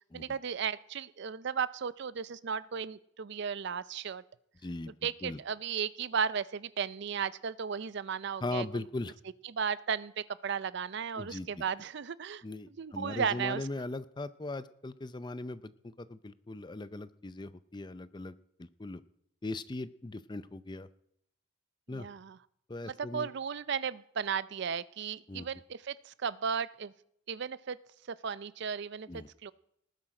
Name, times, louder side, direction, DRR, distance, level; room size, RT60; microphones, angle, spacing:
voice 1, 0.1-4.2 5.0-8.8 9.4-12.4 12.8-13.7 21.9-22.4 22.8-26.9 27.3-27.8 28.1-29.5, right 6 dB, 55° right, 18 dB, 0.4 m, -35 dB
voice 2, 4.6-4.9 5.2-5.4 8.4-9.2 11.2-11.6 12.4-18.3 18.6-19.0 19.4-20.9 21.9-22.1 22.7-23.3 25.3-25.5 29.1-29.3, left 2 dB, 20° left, 14 dB, 0.5 m, -39 dB
19.0 x 10.0 x 4.9 m, 0.74 s
head